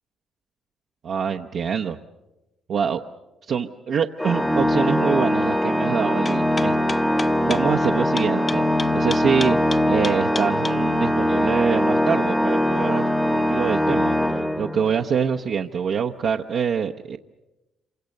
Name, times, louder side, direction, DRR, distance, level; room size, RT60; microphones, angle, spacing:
voice 1, 1.0-2.0 2.7-3.0 3.5-6.8 7.4-8.7 8.9-9.6 9.9-17.2, right 7 dB, 65° right, 2 dB, 0.8 m, -25 dB
Organ, 4.2-15.0, left 1 dB, 5° left, 1.0 m, -22 dB
sound 1, 6.3-10.8, left 3 dB, 30° left, 0.9 m, -31 dB
27.0 x 24.5 x 6.6 m, 1.0 s
cardioid pair, 90°, 0 cm